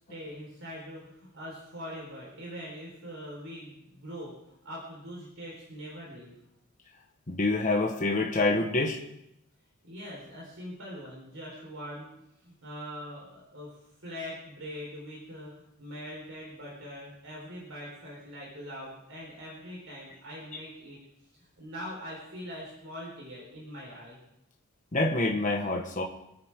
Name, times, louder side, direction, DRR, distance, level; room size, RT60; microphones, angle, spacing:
voice 1, 0.1-4.3 4.6-6.3 9.8-12.2 12.4-21.0 21.6-24.2, equal, 65° right, -3 dB, 4.4 m, -42 dB
voice 2, 7.3-9.0 24.9-26.0, left 2 dB, 35° left, 0 dB, 1.4 m, -26 dB
27.0 x 9.5 x 3.7 m, 0.81 s
head